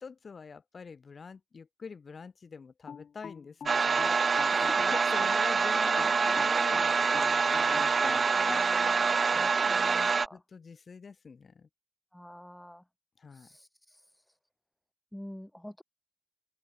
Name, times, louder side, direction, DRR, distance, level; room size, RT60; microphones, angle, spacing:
voice 1, 0.0-4.1 4.5-8.3 9.3-9.5 10.3-11.7 13.2-13.5, left 5 dB, 50° left, 2.4 m, -46 dB
sound 1, 2.9-5.5 6.0-8.7, left 7 dB, 70° left, 1.3 m, -44 dB
sound 2, 3.7-10.3, right 5 dB, 45° right, 0.5 m, -26 dB
voice 2, 8.2-10.4 12.1-12.8 13.3-14.2 15.1-15.8, left 1 dB, 5° left, 6.2 m, -46 dB
open air
wide cardioid pair, 100°, 0 cm